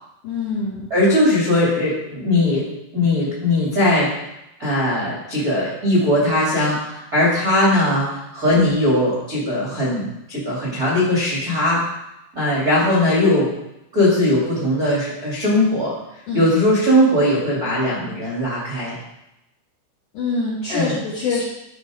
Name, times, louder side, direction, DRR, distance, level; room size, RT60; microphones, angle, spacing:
voice 1, 0.2-0.8 16.3-16.4 20.2-21.4, left 4 dB, 75° left, -5 dB, 1.8 m, -24 dB
voice 2, 0.9-2.7 2.9-4.1 4.6-11.8 12.3-13.5 13.9-15.9 16.3-18.9 20.7-21.0 21.3-21.4, left 1 dB, 60° right, -7 dB, 0.9 m, -19 dB
12.5 x 4.1 x 4.7 m, 0.89 s
omnidirectional pair, 5.5 m